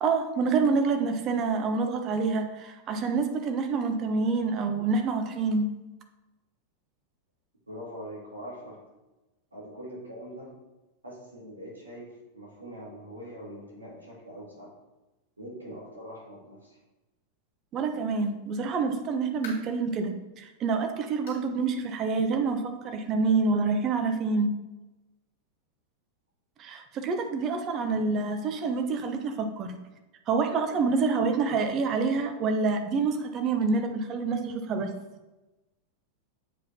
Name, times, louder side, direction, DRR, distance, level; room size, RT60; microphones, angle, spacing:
voice 1, 0.0-5.7 17.7-24.5 26.6-29.7 30.3-34.9, right 4 dB, 35° right, 6 dB, 0.7 m, -27 dB
voice 2, 7.7-8.8 9.5-10.5 11.0-14.7 15.4-16.8 27.9-28.0, equal, 80° right, -5 dB, 2.2 m, -43 dB
sound 1, 19.4-19.9 20.4-20.5 21.3-21.5 21.8-21.9 22.5-22.6 23.6-23.7, left 3 dB, 55° left, 2.0 m, -46 dB
7.9 x 4.8 x 2.8 m, 1.1 s
figure-of-eight pair, 90°, 0 cm